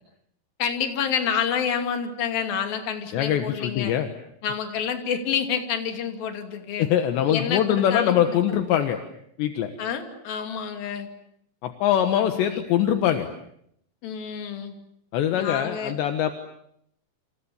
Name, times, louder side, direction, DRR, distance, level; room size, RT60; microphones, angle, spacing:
voice 1, 0.6-3.9 4.4-6.9 7.3-8.4 9.8-11.1 12.1-12.6 14.0-14.8 15.3-16.0, left 7 dB, 55° left, 6 dB, 4.1 m, -28 dB
voice 2, 3.1-4.1 6.8-9.0 9.4-9.7 11.6-13.3 15.1-16.3, left 10 dB, 75° left, 7 dB, 3.5 m, -23 dB
29.5 x 27.5 x 7.0 m, 0.72 s
omnidirectional pair, 5.3 m